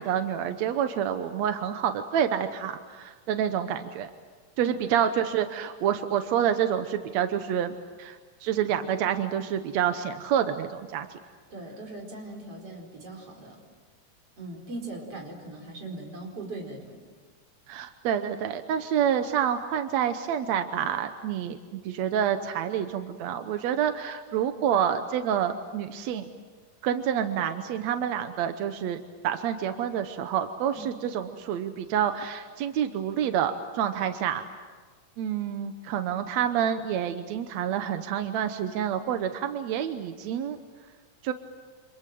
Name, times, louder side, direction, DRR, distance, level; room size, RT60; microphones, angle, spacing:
voice 1, 0.0-4.1 4.6-11.2 17.7-26.3 26.8-34.4 35.2-40.6 41.2-41.3, right 9 dB, 70° right, 8 dB, 1.8 m, -28 dB
voice 2, 11.5-13.6 14.4-17.0 30.8-30.9, right 2 dB, 40° right, 2 dB, 5.4 m, -40 dB
29.5 x 26.5 x 7.7 m, 1.5 s
omnidirectional pair, 4.1 m